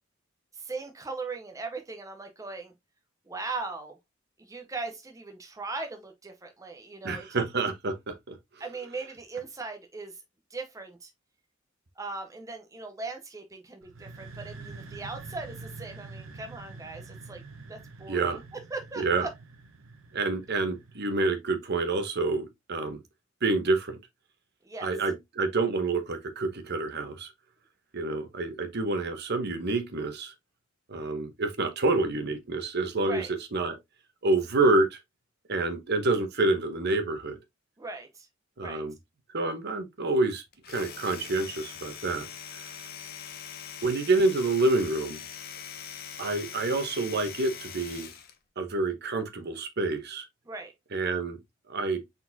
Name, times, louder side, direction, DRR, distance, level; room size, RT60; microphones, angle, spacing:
voice 1, 0.5-2.7 3.3-4.0 4.4-7.4 8.6-10.2 10.5-11.1 12.0-17.4 17.7-19.3 24.6-24.9 33.0-33.3 37.8-38.3 38.6-38.8 50.5-50.7, right 3 dB, 15° right, 0.6 m, -39 dB
voice 2, 7.0-8.3 18.1-18.4 19.0-19.3 20.1-23.0 23.4-24.0 24.8-27.3 27.9-30.3 30.9-33.2 33.5-33.7 34.2-35.0 35.5-37.4 38.6-38.9 39.3-42.3 43.8-45.2 46.2-48.1 48.6-50.3 50.9-51.4 51.7-52.0, right 3 dB, 55° right, 0.9 m, -28 dB
sound 1, 13.8-21.5, right 3 dB, 80° right, 0.8 m, -46 dB
Domestic sounds home sounds, 40.5-48.4, left 8 dB, 50° left, 0.7 m, -42 dB
4.7 x 4.0 x 2.6 m
head